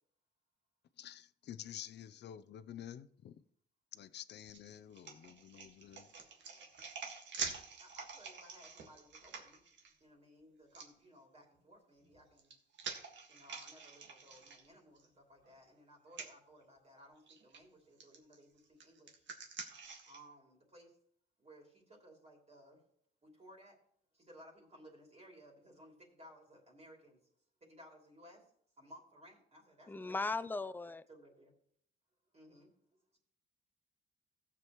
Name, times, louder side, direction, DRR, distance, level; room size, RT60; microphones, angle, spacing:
voice 1, 1.0-3.4 3.9-6.1, left 10 dB, 60° left, 0.6 m, -50 dB
sound 1, 4.4-9.9 10.7-10.9 12.0-15.1 15.4-15.5 16.1-16.3 17.3-17.6 18.0-20.2, right 5 dB, 65° right, 1.7 m, -47 dB
voice 2, 7.8-9.6 10.0-12.5 13.3-19.3 20.0-20.9 21.4-22.8 23.2-23.8 24.1-27.2 27.6-28.4 28.8-30.2 31.1-31.5 32.3-32.7 33.1-33.2, equal, 30° right, 2.9 m, -59 dB
voice 3, 29.9-31.0, left 3 dB, 10° left, 0.4 m, -38 dB
16.0 x 7.4 x 3.1 m
cardioid pair, 90°, 20 cm